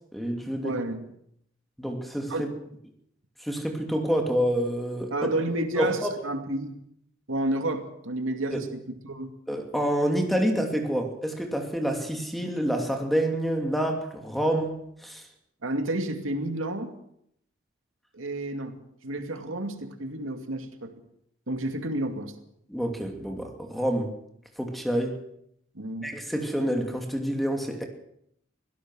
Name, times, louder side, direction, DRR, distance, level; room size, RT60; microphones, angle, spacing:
voice 1, 0.1-0.8 1.8-2.5 3.4-5.1 5.8-6.2 8.5-8.6 9.5-15.2 22.7-24.1 24.6-25.2 26.0-27.8, equal, ahead, 3 dB, 2.7 m, -28 dB
voice 2, 0.6-1.0 2.3-2.4 5.1-6.7 7.3-9.3 15.6-16.9 18.1-20.9 21.5-22.3 25.7-26.1, right 1 dB, 85° right, 6 dB, 2.4 m, -31 dB
24.5 x 17.0 x 6.3 m, 0.73 s
head